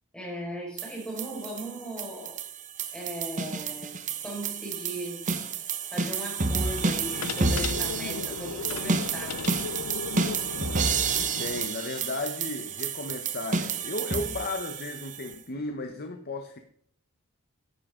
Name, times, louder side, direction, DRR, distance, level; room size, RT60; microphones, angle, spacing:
voice 1, 0.1-2.4 2.9-5.4 5.9-9.5, equal, 5° left, -3 dB, 4.9 m, -38 dB
sound 1, 0.8-15.3, right 5 dB, 35° right, 1.0 m, -30 dB
sound 2, 6.4-11.7, left 5 dB, 75° left, 0.6 m, -36 dB
voice 2, 11.4-16.6, left 2 dB, 45° left, 6 dB, 0.9 m, -34 dB
14.0 x 10.5 x 3.8 m, 0.65 s
head